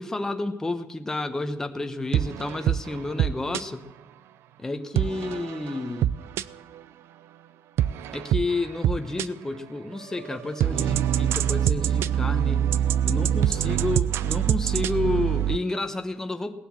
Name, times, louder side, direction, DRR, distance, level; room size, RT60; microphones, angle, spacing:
voice 1, 0.0-3.8 4.6-6.1 8.1-12.7 13.0-16.5, left 2 dB, 10° left, 7 dB, 0.9 m, -30 dB
sound 1, 2.1-3.6 5.0-6.8 7.8-9.3 9.9-15.6, right 10 dB, 75° right, 0.5 m, -25 dB
18.0 x 10.0 x 7.6 m, 1.0 s
cardioid pair, 160°, 4 cm